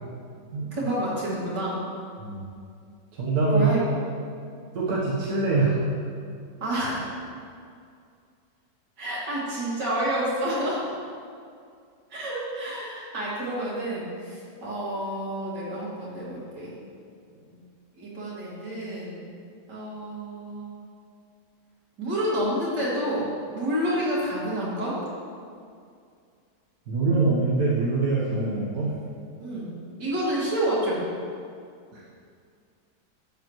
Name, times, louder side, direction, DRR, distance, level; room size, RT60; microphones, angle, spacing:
voice 1, 0.7-1.8 3.5-4.0 6.6-7.1 9.0-10.8 12.1-16.8 17.5-17.6 18.0-19.2 19.7-20.7 22.0-25.0 29.4-29.7 30.0-31.0, right 1 dB, 80° right, -7 dB, 2.9 m, -29 dB
voice 2, 3.1-3.7 4.7-5.9 26.9-29.0 31.9-32.0, right 3 dB, 65° right, -6 dB, 1.7 m, -24 dB
12.0 x 7.4 x 3.1 m, 2.3 s
omnidirectional pair, 1.8 m